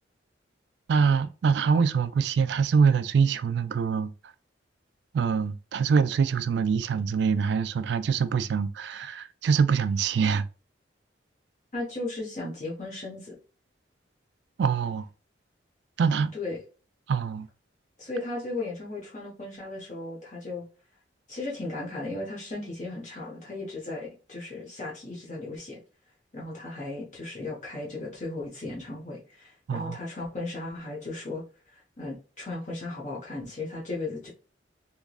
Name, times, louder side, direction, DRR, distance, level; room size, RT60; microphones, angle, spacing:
voice 1, 0.9-4.1 5.1-10.5 14.6-15.1 16.0-16.3 17.1-17.5 29.7-30.0, right 6 dB, 65° right, 0.3 m, -24 dB
voice 2, 11.7-13.4 16.3-16.6 18.0-20.7 21.3-25.8 26.3-31.4 31.7-34.3, left 2 dB, 40° left, 1.1 m, -36 dB
3.5 x 3.0 x 2.3 m
head